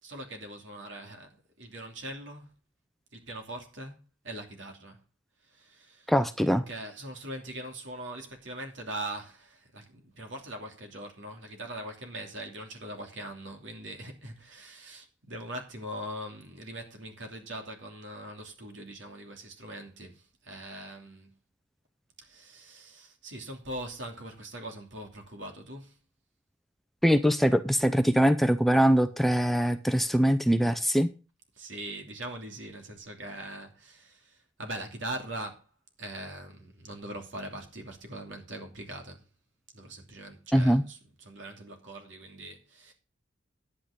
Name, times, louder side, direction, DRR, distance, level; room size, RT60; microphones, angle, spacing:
voice 1, 0.0-2.5 3.1-4.0 4.2-5.0 5.4-6.3 6.7-21.3 22.2-26.0 31.5-35.7 36.0-39.3 39.7-42.9, right 1 dB, 70° right, 2.8 m, -41 dB
voice 2, 6.1-6.6 27.0-31.1 40.5-40.8, equal, ahead, 0.5 m, -23 dB
10.0 x 8.8 x 5.2 m
head